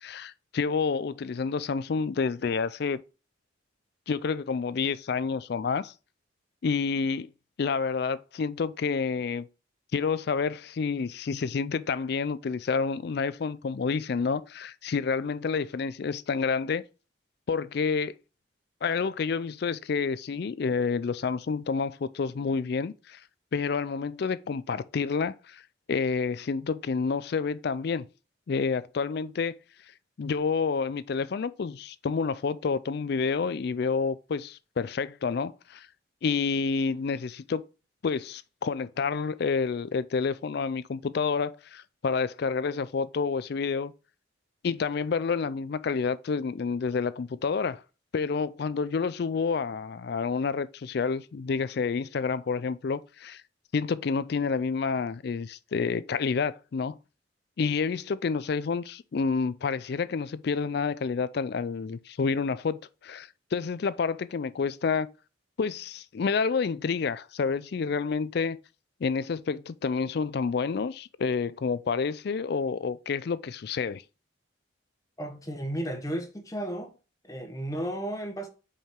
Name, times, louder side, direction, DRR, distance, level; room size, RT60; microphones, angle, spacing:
voice 1, 0.0-3.0 4.1-5.9 6.6-7.3 7.6-9.5 9.9-16.8 17.5-18.1 18.8-23.2 23.5-25.6 25.9-28.1 28.5-29.5 30.2-35.9 36.2-37.6 38.0-43.9 44.6-47.8 48.1-53.4 53.7-57.0 57.6-65.1 65.6-68.6 69.0-74.0, left 5 dB, 50° left, 0.4 m, -29 dB
voice 2, 75.2-76.9 77.2-78.5, right 1 dB, 15° left, 1.0 m, -33 dB
5.4 x 4.9 x 3.6 m
head